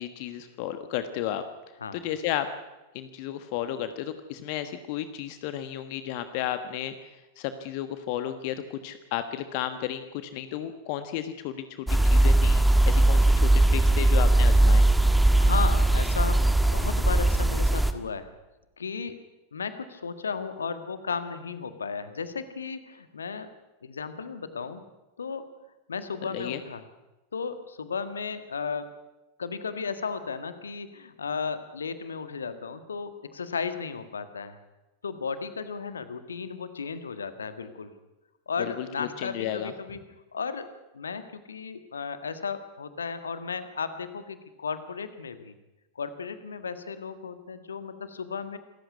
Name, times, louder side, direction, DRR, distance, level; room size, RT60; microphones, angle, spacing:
voice 1, 0.0-1.4 1.9-2.5 2.9-6.9 7.4-14.8 26.3-26.6 38.6-39.7, left 11 dB, 45° left, 10 dB, 1.3 m, -33 dB
sound 1, 11.9-17.9, right 1 dB, 5° right, 1.6 m, -20 dB
voice 2, 15.4-16.4 16.7-18.3 18.8-19.2 19.5-23.5 23.8-24.8 25.2-25.4 25.9-26.8 27.3-28.9 29.4-34.6 35.0-37.9 38.5-40.0 40.3-40.7 40.9-45.5 45.9-48.6, left 5 dB, 70° left, 10 dB, 1.7 m, -34 dB
27.0 x 14.5 x 9.5 m, 1.0 s
figure-of-eight pair, 90°, 0 cm